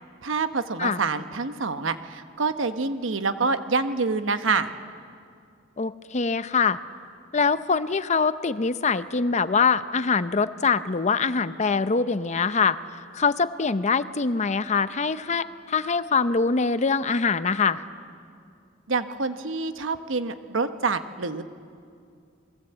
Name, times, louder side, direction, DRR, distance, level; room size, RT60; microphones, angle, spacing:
voice 1, 0.2-4.7 18.9-21.4, right 4 dB, 85° right, 10 dB, 1.1 m, -27 dB
voice 2, 5.8-6.8 7.3-12.8 13.1-17.8, left 5 dB, 35° left, 13 dB, 0.7 m, -23 dB
28.5 x 21.0 x 8.0 m, 2.4 s
head